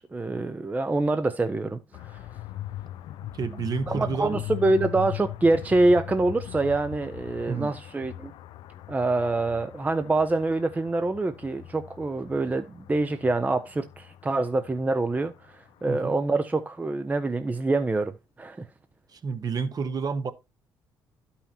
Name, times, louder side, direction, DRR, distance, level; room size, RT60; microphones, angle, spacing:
voice 1, 0.0-2.2 3.9-8.3 8.9-18.1 18.4-18.7, right 2 dB, 20° right, 0.6 m, -25 dB
sound 1, 1.9-15.8, left 14 dB, 70° left, 0.4 m, -40 dB
voice 2, 3.3-4.4 7.5-7.7 15.9-16.2 19.1-20.3, right 5 dB, 45° right, 1.0 m, -30 dB
12.0 x 5.6 x 2.7 m
cardioid pair, 80°, 9 cm